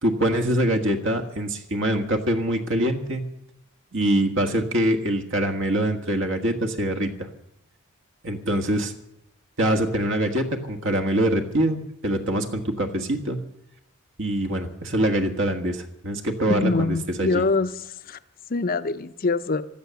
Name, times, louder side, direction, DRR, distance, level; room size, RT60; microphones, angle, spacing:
voice 1, 0.0-3.2 3.9-7.1 8.2-8.9 9.6-13.4 14.2-17.4, right 1 dB, 60° right, 5 dB, 1.6 m, -24 dB
voice 2, 16.5-17.7 18.1-18.2 18.5-19.6, left 3 dB, 40° left, 12 dB, 0.6 m, -24 dB
16.0 x 12.5 x 6.9 m, 0.80 s
head